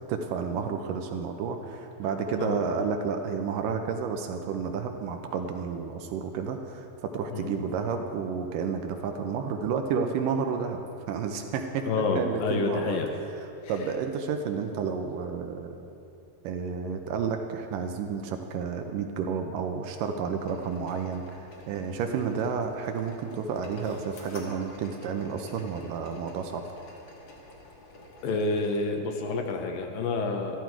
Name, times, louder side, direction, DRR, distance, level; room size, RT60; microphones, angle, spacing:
voice 1, 0.0-10.8 11.1-11.8 12.2-13.0 13.7-15.9 16.4-26.6, right 6 dB, 75° right, 5 dB, 2.1 m, -31 dB
voice 2, 11.9-13.1 28.2-30.6, left 3 dB, 75° left, 3 dB, 2.5 m, -28 dB
sound 1, 20.4-28.8, left 2 dB, 50° left, 2.5 m, -49 dB
13.0 x 13.0 x 4.6 m, 2.8 s
omnidirectional pair, 4.3 m